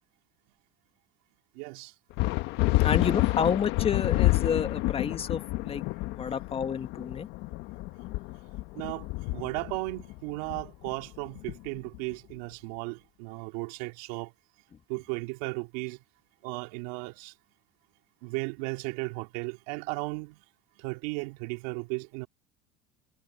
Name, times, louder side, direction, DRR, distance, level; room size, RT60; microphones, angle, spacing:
voice 1, 1.5-1.9 3.0-3.1 8.7-9.1 9.3-14.3 14.9-16.0 16.4-17.3 18.2-20.4 20.8-22.3, right 27 dB, 75° right, 3.2 m, -35 dB
sound 1, 2.2-12.1, left 20 dB, 65° left, 1.4 m, -29 dB
voice 2, 2.8-7.3, left 7 dB, 30° left, 1.8 m, -30 dB
supercardioid pair, 100°, 19 cm